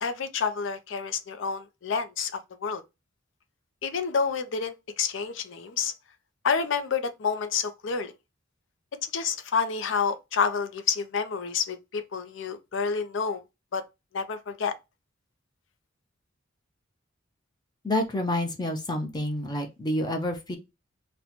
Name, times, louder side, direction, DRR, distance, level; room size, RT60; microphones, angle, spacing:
voice 1, 0.0-2.8 3.8-5.9 6.4-8.1 9.1-13.4 13.7-13.8 14.1-14.7, left 6 dB, 70° left, 0.5 m, -29 dB
voice 2, 17.8-20.6, left 1 dB, 20° left, 0.6 m, -28 dB
4.1 x 2.2 x 2.8 m
head